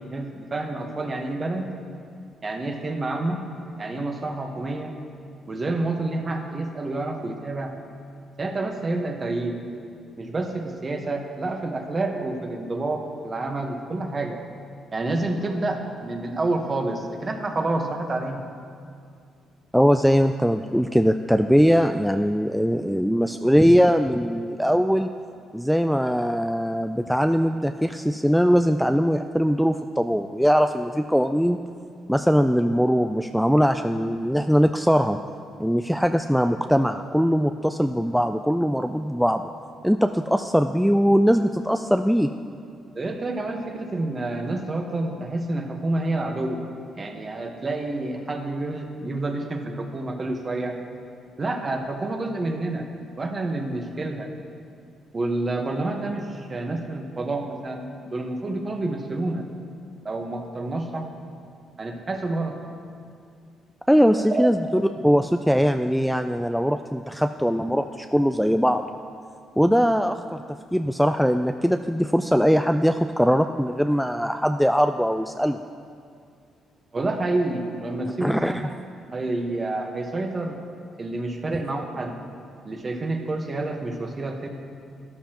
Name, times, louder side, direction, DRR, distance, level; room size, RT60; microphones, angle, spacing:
voice 1, 0.1-1.7 2.4-3.4 3.8-4.9 5.5-7.7 8.4-9.6 10.2-14.4 14.9-18.4 42.9-46.6 47.0-50.8 51.4-52.9 53.2-54.3 55.1-59.4 60.0-61.1 61.8-62.6 64.2-64.5 65.2-65.3 76.9-78.8 79.1-80.6 81.0-82.2 82.6-84.5, right 2 dB, 35° right, 4 dB, 1.2 m, -28 dB
voice 2, 19.7-25.1 25.5-31.6 32.1-35.2 35.6-39.5 39.8-42.3 63.9-68.8 69.6-70.4 70.7-75.6 78.2-78.7, equal, ahead, 7 dB, 0.3 m, -21 dB
12.5 x 11.5 x 3.0 m, 2.3 s
cardioid pair, 90°, 0 cm